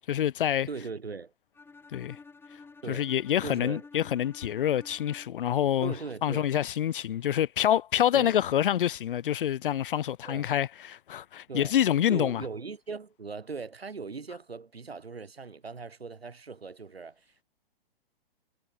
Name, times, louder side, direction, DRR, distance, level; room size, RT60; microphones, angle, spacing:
voice 1, 0.1-0.7 1.9-2.2 2.9-5.9 6.2-12.4, left 10 dB, 60° left, 0.5 m, -27 dB
voice 2, 0.7-1.3 2.8-3.1 3.4-3.8 5.8-6.5 8.1-8.4 10.2-10.5 11.5-11.8 12.1-17.4, right 4 dB, 85° right, 1.7 m, -39 dB
Bowed string instrument, 1.5-5.5, left 4 dB, 5° left, 6.0 m, -51 dB
figure-of-eight pair, 120°, 30 cm